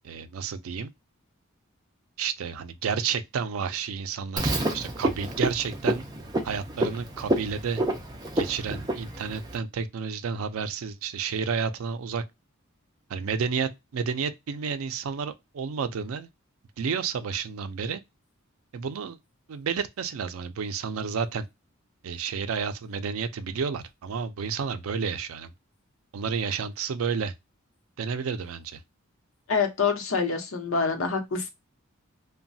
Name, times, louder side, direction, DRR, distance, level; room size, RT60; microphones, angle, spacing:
voice 1, 0.0-0.9 2.2-6.0 6.4-7.8 8.4-12.2 13.1-16.3 16.8-18.0 18.7-19.2 19.5-21.4 22.0-25.5 26.1-27.3 28.0-28.8, right 6 dB, 85° right, 0.4 m, -31 dB
Frog, 4.4-9.6, right 1 dB, 20° right, 0.5 m, -29 dB
voice 2, 29.5-31.5, left 5 dB, 75° left, 0.8 m, -26 dB
3.0 x 2.2 x 2.6 m
head